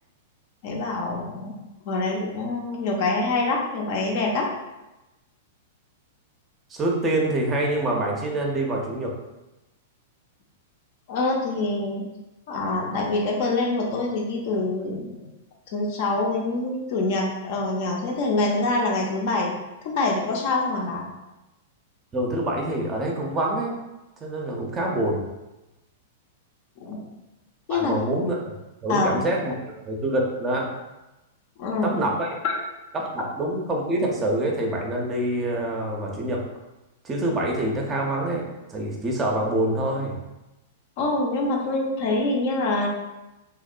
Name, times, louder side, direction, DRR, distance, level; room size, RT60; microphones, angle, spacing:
voice 1, 0.6-4.5 11.1-12.1 12.5-15.3 15.7-19.6 19.8-21.1 26.8-27.0 27.7-28.0 28.9-29.1 31.6-32.0 32.4-32.5 41.0-42.9, left 2 dB, 50° left, 0 dB, 0.4 m, -25 dB
voice 2, 6.7-9.2 22.1-23.8 24.2-25.2 27.7-28.4 28.8-30.7 31.8-32.4 32.9-36.4 37.0-38.4 38.7-40.2, right 1 dB, 20° right, -1 dB, 0.5 m, -26 dB
2.7 x 2.0 x 2.4 m, 1.0 s
figure-of-eight pair, 100°, 0 cm